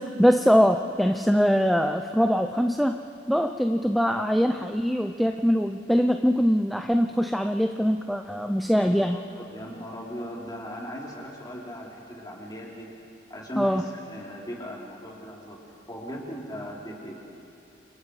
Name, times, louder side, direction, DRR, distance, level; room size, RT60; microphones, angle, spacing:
voice 1, 0.0-3.0 3.3-9.2 13.6-13.9, equal, ahead, 5 dB, 0.6 m, -22 dB
voice 2, 8.8-12.9 13.3-15.6 15.9-17.1, equal, 20° left, -3 dB, 4.0 m, -38 dB
29.5 x 28.0 x 4.9 m, 2.7 s
head